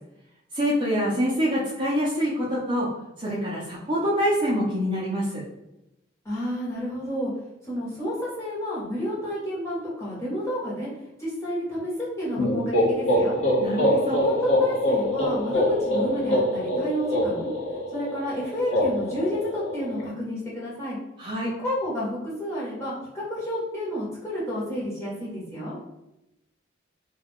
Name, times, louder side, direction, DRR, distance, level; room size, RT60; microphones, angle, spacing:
voice 1, 0.5-2.9 3.2-5.4 13.6-14.2 21.2-21.5, equal, 25° right, -7 dB, 0.5 m, -25 dB
voice 2, 6.2-7.3 7.6-10.9 11.2-13.4 13.9-17.5 17.9-21.0 21.6-25.8, equal, 15° left, -8 dB, 0.9 m, -30 dB
sound 1, 12.4-20.1, left 1 dB, 75° left, 0.6 m, -24 dB
2.3 x 2.3 x 3.4 m, 0.90 s
head